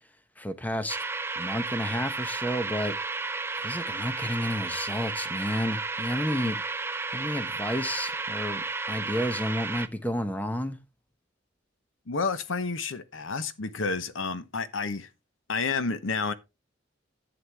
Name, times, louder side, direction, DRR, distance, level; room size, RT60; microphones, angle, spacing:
voice 1, 0.4-1.0 1.4-2.9 3.6-6.6 7.1-10.8, equal, 10° left, 0.8 m, -31 dB
sound 1, 0.9-9.9, right 3 dB, 10° right, 0.4 m, -33 dB
voice 2, 12.1-15.1 15.5-16.3, left 4 dB, 85° left, 0.9 m, -30 dB
11.0 x 7.8 x 3.3 m
head